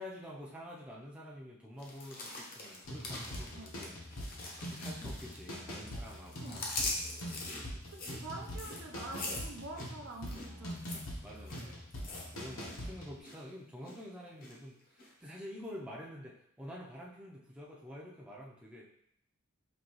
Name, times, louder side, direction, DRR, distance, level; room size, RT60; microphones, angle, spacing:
voice 1, 0.0-4.0 4.6-7.7 10.3-10.7 11.2-18.9, equal, 5° right, -4 dB, 0.6 m, -48 dB
sound 1, 1.8-5.6 5.9-12.8 13.1-13.4 13.8-14.5 15.0-15.1, left 2 dB, 45° left, 0.8 m, -42 dB
Rock drum loop, 2.8-13.2, equal, 70° left, 1.1 m, -44 dB
voice 2, 6.4-6.8 7.9-10.8 11.6-11.8, right 2 dB, 60° right, 1 dB, 0.6 m, -46 dB
5.3 x 2.8 x 3.0 m, 0.70 s
head